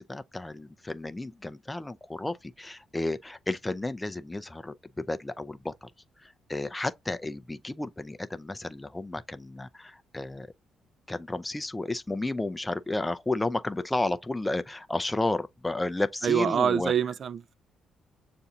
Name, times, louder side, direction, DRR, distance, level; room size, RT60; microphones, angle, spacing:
voice 1, 0.0-5.9 6.5-10.5 11.1-16.9, left 2 dB, 15° left, 0.4 m, -32 dB
voice 2, 16.2-17.5, right 8 dB, 55° right, 0.3 m, -26 dB
6.9 x 2.5 x 2.7 m
cardioid pair, 90°, 0 cm